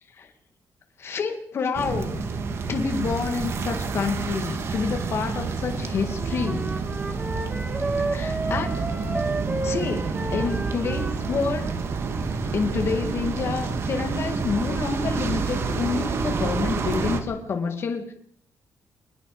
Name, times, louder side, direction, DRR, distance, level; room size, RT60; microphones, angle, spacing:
voice 1, 1.0-2.2 2.7-6.7 8.0-8.7 9.6-11.7 12.5-18.1, left 5 dB, 45° left, 5 dB, 2.5 m, -28 dB
sound 1, 1.7-17.2, right 4 dB, 45° right, 2.3 m, -28 dB
Wind instrument woodwind instrument, 6.2-11.5, right 2 dB, 15° right, 3.2 m, -31 dB
25.5 x 21.0 x 5.1 m, 0.65 s
cardioid pair, 160°, 6 cm